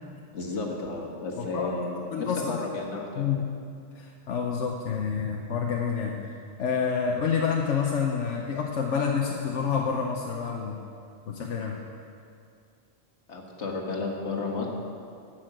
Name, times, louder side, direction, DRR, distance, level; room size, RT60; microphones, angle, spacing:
voice 1, 0.3-3.4 13.3-14.7, left 3 dB, 70° left, 0 dB, 1.8 m, -33 dB
voice 2, 1.4-2.6 3.1-3.4 3.9-6.2 6.6-10.8 11.3-11.8, left 6 dB, 90° left, 0 dB, 1.1 m, -28 dB
12.0 x 6.1 x 7.7 m, 2.4 s
omnidirectional pair, 1.2 m